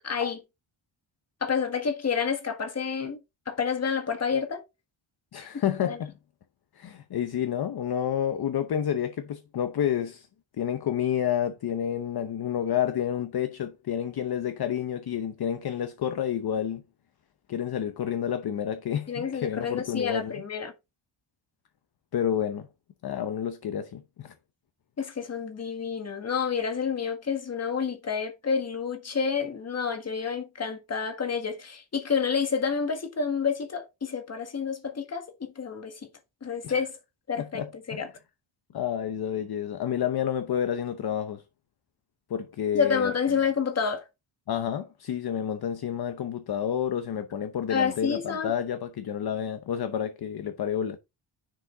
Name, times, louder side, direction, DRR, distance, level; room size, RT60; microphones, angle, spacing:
voice 1, 0.0-0.4 1.4-3.2 3.5-4.6 5.4-5.5 5.9-6.0 19.1-20.7 25.0-36.0 36.4-37.0 37.3-38.1 42.7-44.1 47.7-48.5, left 6 dB, 30° left, 1.6 m, -29 dB
voice 2, 5.3-6.1 6.7-10.3 10.6-16.8 17.5-20.4 22.1-22.7 23.0-24.3 36.6-36.7 37.4-38.0 38.7-41.4 42.3-43.1 44.5-51.0, left 9 dB, 50° left, 0.9 m, -29 dB
10.0 x 5.1 x 3.9 m
wide cardioid pair, 170°, 49 cm